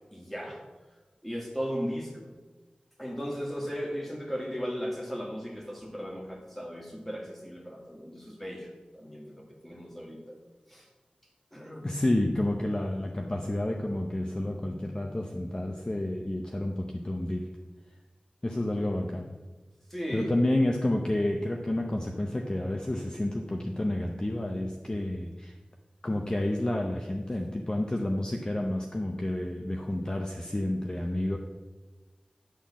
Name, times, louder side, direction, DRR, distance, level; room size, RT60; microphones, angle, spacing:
voice 1, 0.1-0.6 1.2-2.3 3.0-10.4 10.7-10.9 11.5-11.9 19.9-20.3, equal, 5° left, -1 dB, 2.0 m, -36 dB
voice 2, 11.8-17.5 18.4-19.3 20.1-25.5 26.0-31.4, left 1 dB, 30° left, 2 dB, 0.7 m, -30 dB
10.5 x 3.9 x 7.2 m, 1.3 s
wide cardioid pair, 75°, 3 cm